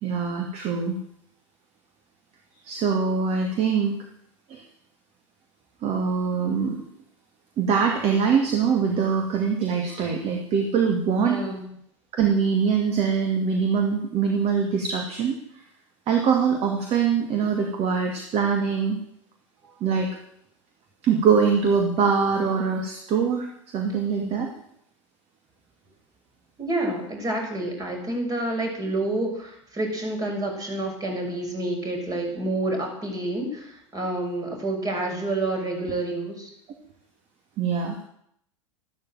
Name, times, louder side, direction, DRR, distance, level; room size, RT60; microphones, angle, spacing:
voice 1, 0.0-1.0 2.6-4.0 4.5-4.6 5.8-6.8 7.6-11.4 12.1-15.4 16.1-19.0 19.8-20.1 21.0-23.5 23.7-24.5 37.6-38.0, right 6 dB, 40° right, 3 dB, 2.5 m, -23 dB
voice 2, 11.2-11.7 19.6-19.7 26.6-36.5, right 2 dB, 20° right, 2 dB, 6.5 m, -29 dB
14.0 x 13.0 x 7.7 m, 0.72 s
figure-of-eight pair, 85°, 17 cm